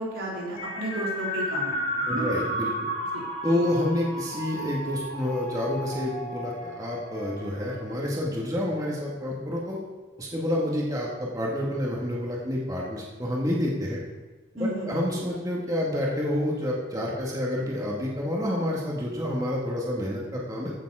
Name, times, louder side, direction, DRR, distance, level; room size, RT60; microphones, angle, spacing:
voice 1, 0.0-2.3 3.4-3.7 14.6-14.9, right 1 dB, 85° right, -4 dB, 4.0 m, -33 dB
sound 1, 0.6-8.1, equal, 40° left, 2.7 m, -33 dB
voice 2, 2.1-2.9 3.4-9.8 10.2-14.0 14.6-20.7, left 1 dB, 20° right, -4 dB, 1.9 m, -28 dB
15.0 x 7.7 x 4.9 m, 1.3 s
head